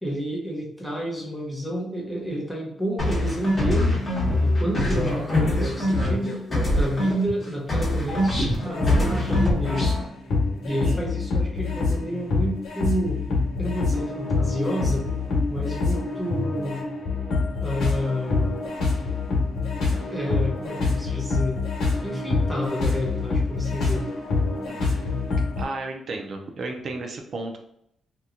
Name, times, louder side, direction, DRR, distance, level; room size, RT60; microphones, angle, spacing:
voice 1, 0.0-4.0 4.4-9.9 10.6-13.2 13.6-15.1 15.5-16.8 17.6-18.6 20.1-21.6 22.0-24.1, equal, 5° left, -4 dB, 0.7 m, -30 dB
sound 1, 3.0-7.4 7.7-10.0, left 1 dB, 20° left, 1.2 m, -24 dB
sound 2, 8.7-25.6, left 3 dB, 80° left, 1.0 m, -26 dB
voice 2, 10.7-11.0 24.6-25.0 25.6-27.6, right 2 dB, 45° right, 3 dB, 0.5 m, -34 dB
2.9 x 2.2 x 3.7 m, 0.73 s
wide cardioid pair, 170°, 0 cm